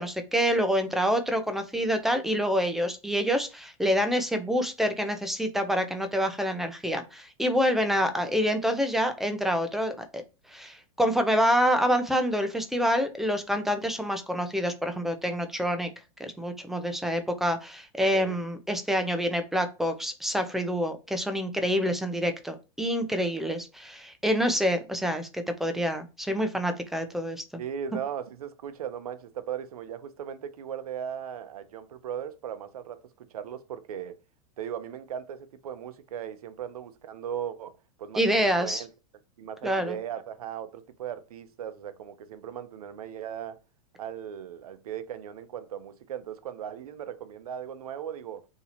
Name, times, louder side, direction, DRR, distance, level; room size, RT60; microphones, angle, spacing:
voice 1, 0.0-10.2 10.5-15.9 16.2-27.4 38.2-38.8 39.6-40.0, equal, ahead, 0.5 m, -27 dB
voice 2, 27.6-34.2 34.6-38.9 39.4-43.6 44.0-48.5, right 9 dB, 90° right, 0.6 m, -38 dB
2.9 x 2.7 x 4.1 m
hypercardioid pair, 130°, 18 cm